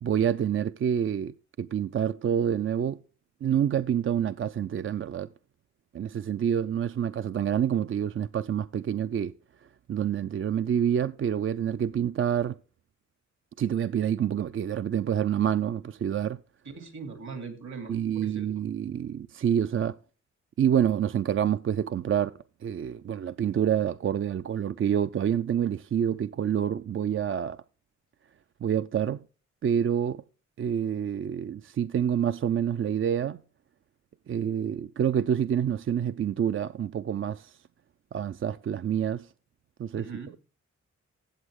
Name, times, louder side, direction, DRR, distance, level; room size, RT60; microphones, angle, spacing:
voice 1, 0.0-3.0 3.4-5.3 5.9-9.3 9.9-12.5 13.6-16.4 17.9-20.0 20.6-27.6 28.6-29.2 29.6-30.2 30.6-33.4 34.3-37.6 38.1-39.3 39.8-40.1, right 9 dB, 45° right, 0.4 m, -27 dB
voice 2, 16.6-18.5 39.9-40.4, right 5 dB, 70° right, 2.8 m, -40 dB
14.5 x 7.8 x 3.6 m
cardioid pair, 70°, 29 cm